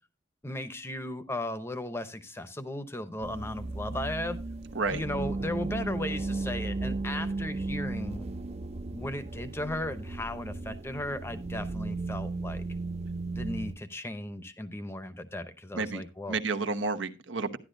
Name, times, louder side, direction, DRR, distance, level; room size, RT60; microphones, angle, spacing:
voice 1, 0.4-4.4 4.9-8.3 8.9-12.6 13.4-16.4, left 1 dB, 15° left, 0.7 m, -36 dB
sound 1, 3.2-13.7, right 3 dB, 35° right, 0.5 m, -35 dB
voice 2, 15.7-17.6, right 4 dB, 85° right, 1.0 m, -31 dB
12.0 x 10.5 x 2.6 m
head